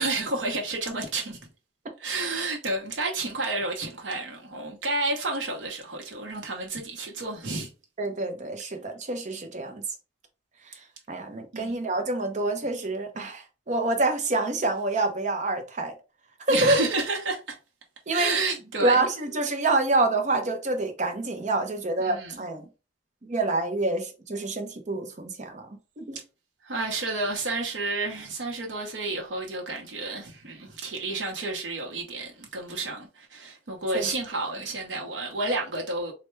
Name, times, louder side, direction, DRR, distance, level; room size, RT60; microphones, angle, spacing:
voice 1, 0.0-1.4 2.0-7.7 11.5-11.8 16.5-17.6 18.1-19.1 22.0-22.4 26.6-36.1, right 3 dB, 75° right, 0.8 m, -30 dB
voice 2, 8.0-9.8 10.7-10.8 11.1-15.9 16.5-16.8 18.1-18.3 18.8-22.7 23.2-25.7 26.0-26.2 33.9-34.1, right 2 dB, 40° right, 0.6 m, -27 dB
3.3 x 2.1 x 3.0 m
head